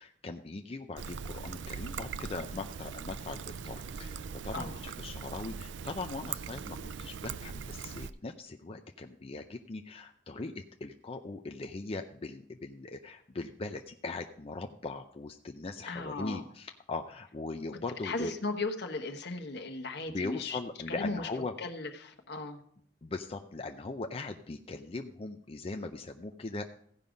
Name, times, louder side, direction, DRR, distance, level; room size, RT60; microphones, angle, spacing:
voice 1, 0.0-18.3 20.1-21.5 23.0-26.6, left 3 dB, 30° left, 5 dB, 0.5 m, -40 dB
Trickle dribble, 1.0-8.1, right 6 dB, 75° right, 0.4 m, -41 dB
voice 2, 15.9-16.4 18.0-20.6 20.9-21.3 21.6-22.6, left 3 dB, 65° left, 6 dB, 1.2 m, -36 dB
15.5 x 5.5 x 5.1 m, 0.64 s
head